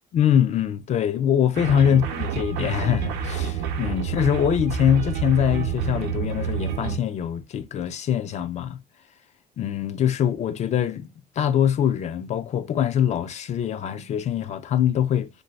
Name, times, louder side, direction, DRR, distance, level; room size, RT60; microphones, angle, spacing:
voice 1, 0.1-8.8 9.6-11.1 11.4-15.3, left 9 dB, 40° left, 0.4 m, -23 dB
sound 1, 1.5-7.0, right 7 dB, 80° right, 0.6 m, -28 dB
2.6 x 2.6 x 3.1 m
cardioid pair, 110°, 17 cm